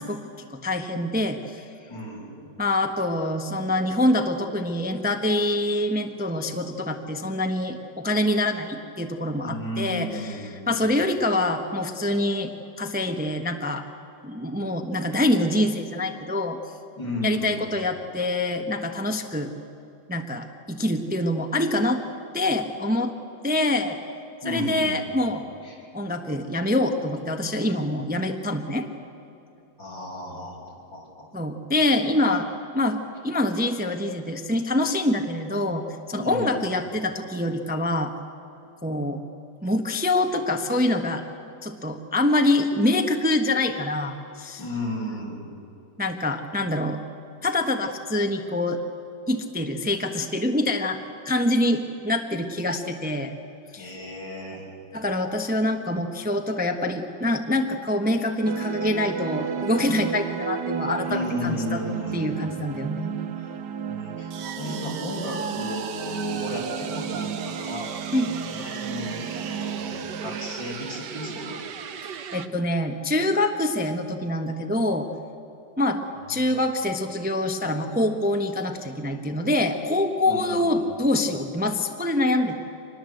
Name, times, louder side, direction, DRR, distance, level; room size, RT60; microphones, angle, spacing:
voice 1, 0.0-1.6 2.6-12.5 12.8-13.8 14.2-16.6 17.2-19.5 20.1-22.0 22.3-23.1 23.4-24.0 24.4-25.4 25.9-28.9 31.3-32.5 32.7-38.1 38.8-39.2 39.6-41.2 41.6-44.6 46.0-47.0 47.4-48.8 49.3-51.0 51.2-53.3 53.7-53.9 54.9-61.8 62.1-63.2 68.1-68.3 72.3-75.1 75.8-76.0 76.3-82.6, left 1 dB, 5° right, 5 dB, 1.0 m, -25 dB
voice 2, 1.9-2.5 9.4-10.9 17.0-17.6 24.4-25.1 25.6-25.8 29.8-31.3 36.2-36.7 44.6-45.4 53.8-54.6 61.0-62.4 63.3-63.6 63.9-67.9 68.2-71.6 76.2-76.6 80.2-80.9, left 1 dB, 80° left, -2 dB, 6.8 m, -34 dB
sound 1, 58.4-72.5, right 8 dB, 65° right, 1.6 m, -33 dB
25.5 x 20.5 x 7.9 m, 2.9 s
omnidirectional pair, 2.0 m